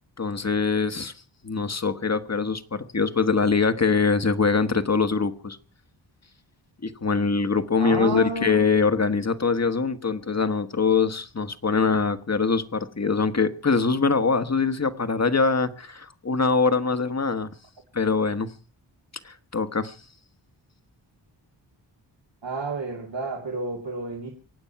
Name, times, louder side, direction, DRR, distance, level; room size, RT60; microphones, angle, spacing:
voice 1, 0.2-1.1 1.4-5.6 6.8-17.5 17.9-18.5 19.2-20.0, left 4 dB, 35° left, 1.5 m, -23 dB
voice 2, 7.8-8.6 22.4-24.3, right 3 dB, 75° right, 2.8 m, -30 dB
24.0 x 8.8 x 5.8 m
cardioid pair, 55°, 45 cm